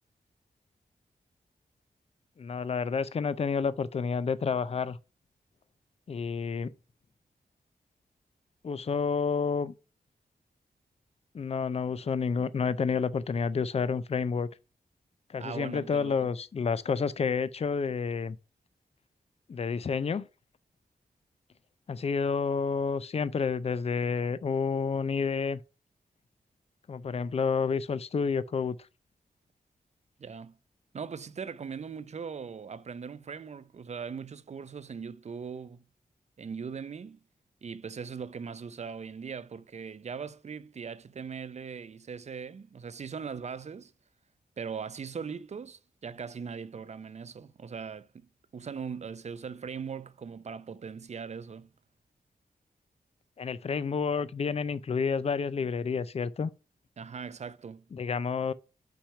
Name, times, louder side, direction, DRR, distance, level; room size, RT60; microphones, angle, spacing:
voice 1, 2.4-5.0 6.1-6.7 8.6-9.7 11.3-14.5 15.3-18.4 19.5-20.2 21.9-25.6 26.9-28.8 53.4-56.5 57.9-58.5, left 5 dB, 40° left, 0.5 m, -29 dB
voice 2, 15.4-16.3 30.2-30.6 30.9-35.8 36.4-37.2 37.6-43.9 44.6-51.7 57.0-57.9, right 6 dB, 45° right, 0.5 m, -40 dB
6.0 x 5.0 x 5.5 m
wide cardioid pair, 125°, 16 cm